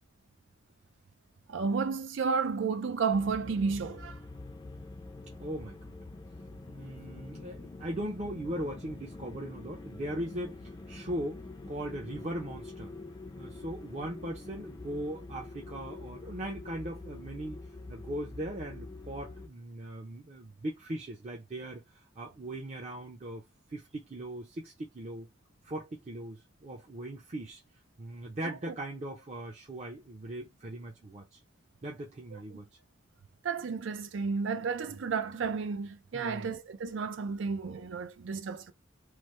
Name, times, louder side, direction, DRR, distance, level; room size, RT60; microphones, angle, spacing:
voice 1, 1.5-4.2 28.7-28.8 32.3-32.4 33.4-38.7, right 5 dB, 75° right, 0.5 m, -32 dB
sound 1, 3.1-19.5, left 2 dB, 25° left, 0.5 m, -45 dB
voice 2, 5.4-5.9 6.7-10.6 10.9-12.9 13.4-17.6 17.9-23.4 23.7-25.3 25.6-27.6 28.0-31.4 31.8-32.6 34.9-35.0 36.1-36.5, right 1 dB, 35° right, 0.6 m, -39 dB
3.2 x 2.1 x 3.1 m
head